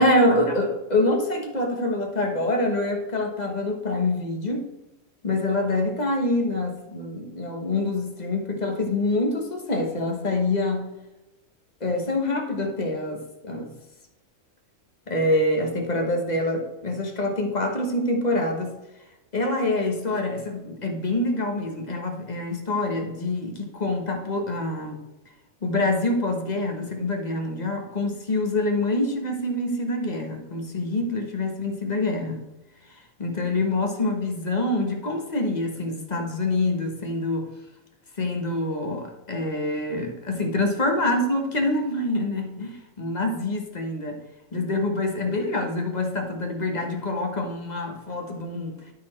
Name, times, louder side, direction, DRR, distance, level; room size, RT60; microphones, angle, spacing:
voice 1, 0.0-4.7 5.2-10.9 11.8-13.7 15.1-18.7 19.3-25.0 25.6-32.4 33.2-37.5 38.2-44.2 44.5-48.7, left 2 dB, 35° left, 3 dB, 1.3 m, -26 dB
12.5 x 4.3 x 4.3 m, 1.0 s
omnidirectional pair, 1.4 m